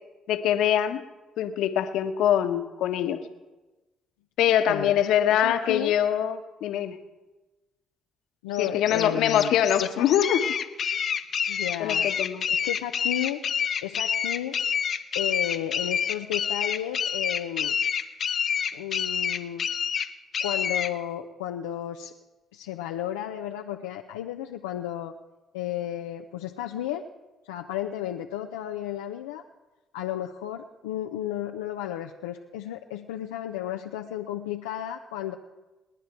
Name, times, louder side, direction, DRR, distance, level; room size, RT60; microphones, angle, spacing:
voice 1, 0.3-1.0 1.4-3.2 4.4-7.0 8.6-10.4 11.8-12.5, left 10 dB, 70° left, 7 dB, 1.3 m, -23 dB
voice 2, 5.3-6.0 8.4-10.1 11.5-12.1 12.5-13.4 13.8-14.6 15.1-17.8 18.7-19.7 20.4-22.1 22.5-25.1 25.5-27.0 27.5-29.4 29.9-35.4, left 12 dB, 90° left, 2 dB, 0.7 m, -33 dB
sound 1, 8.5-20.9, left 7 dB, 55° left, 1.0 m, -28 dB
29.5 x 10.0 x 4.5 m, 1.1 s
hypercardioid pair, 55°, 0 cm